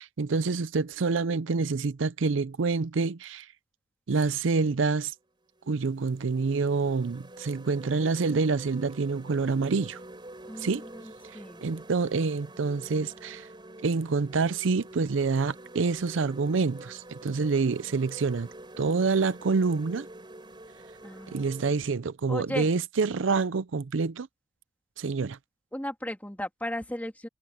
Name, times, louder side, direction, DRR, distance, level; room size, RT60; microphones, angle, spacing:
voice 1, 0.0-3.5 4.1-5.1 5.7-10.0 10.6-10.8 11.6-13.5 13.8-18.5 18.8-20.1 21.3-24.3 25.0-25.4, right 4 dB, 75° right, 0.5 m, -27 dB
sound 1, 5.6-21.7, right 1 dB, 25° right, 5.1 m, -47 dB
voice 2, 10.5-11.6 21.0-21.8 22.3-22.7 25.7-27.3, left 1 dB, 10° left, 2.8 m, -36 dB
head